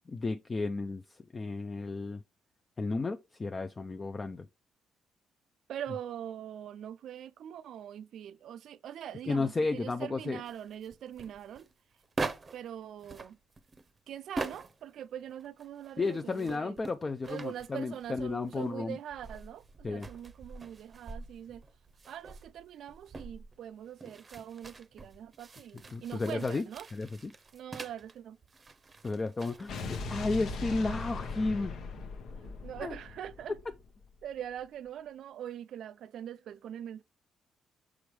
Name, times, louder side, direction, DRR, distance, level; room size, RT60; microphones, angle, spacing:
voice 1, 0.1-2.2 2.8-4.5 9.3-10.4 16.0-19.0 19.8-20.1 25.9-27.3 29.0-31.7 32.8-33.0, left 3 dB, 30° left, 0.4 m, -33 dB
voice 2, 5.7-11.7 12.5-13.4 14.1-16.9 17.2-21.6 22.1-26.9 27.5-28.4 32.6-33.6 34.2-37.0, right 10 dB, 75° right, 0.4 m, -43 dB
sound 1, 10.4-12.7 13.0-14.9 15.3-18.6 19.1-28.2 28.4-30.0, right 3 dB, 30° right, 0.7 m, -44 dB
Explosion, 29.7-34.0, left 3 dB, 75° left, 1.0 m, -39 dB
6.1 x 4.9 x 3.1 m
cardioid pair, 90°, 0 cm